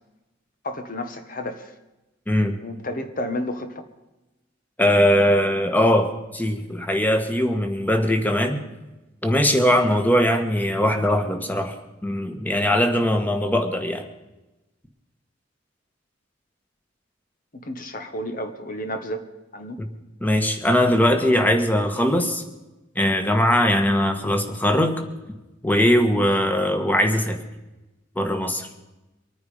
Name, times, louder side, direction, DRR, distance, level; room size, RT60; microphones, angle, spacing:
voice 1, 0.6-1.7 2.6-3.8 17.5-19.2 19.5-19.8, left 1 dB, 45° left, 7 dB, 1.5 m, -31 dB
voice 2, 2.3-2.6 4.8-8.6 9.2-11.7 12.0-14.0 19.8-19.9 20.2-22.4 22.9-25.0 25.6-27.4 28.1-28.7, equal, 10° left, 6 dB, 1.7 m, -20 dB
25.0 x 9.6 x 5.1 m, 1.0 s
head